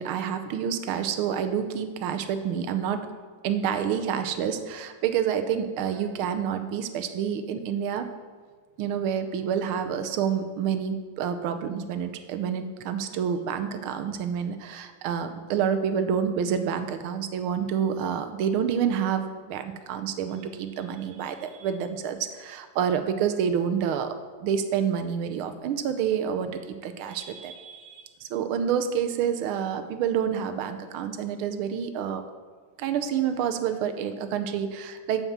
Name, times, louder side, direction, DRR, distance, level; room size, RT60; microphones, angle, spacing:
voice 1, 0.0-3.0 3.4-8.1 8.8-24.2 24.4-32.2 32.8-35.2, right 8 dB, 85° right, 8 dB, 1.6 m, -28 dB
8.0 x 7.1 x 7.2 m, 1.5 s
omnidirectional pair, 2.3 m